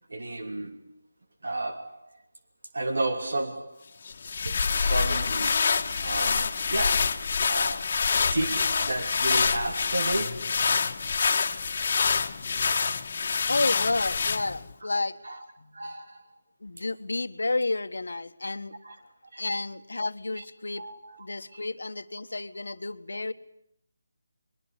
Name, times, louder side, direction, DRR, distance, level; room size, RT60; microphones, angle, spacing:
voice 1, 0.1-1.0 1.4-2.2 2.7-3.8 4.4-10.6 14.8-14.9 15.2-15.4 15.7-16.4 18.8-19.0 19.3-19.5 20.4-20.5 20.8-21.6, right 2 dB, 80° right, 2.8 m, -33 dB
sound 1, 4.1-14.7, left 5 dB, 45° left, 1.7 m, -26 dB
voice 2, 13.5-15.2 15.6-15.8 16.6-18.7 19.4-20.8 21.2-23.3, left 2 dB, 85° left, 1.6 m, -31 dB
24.5 x 22.0 x 9.9 m
figure-of-eight pair, 165°, 0 cm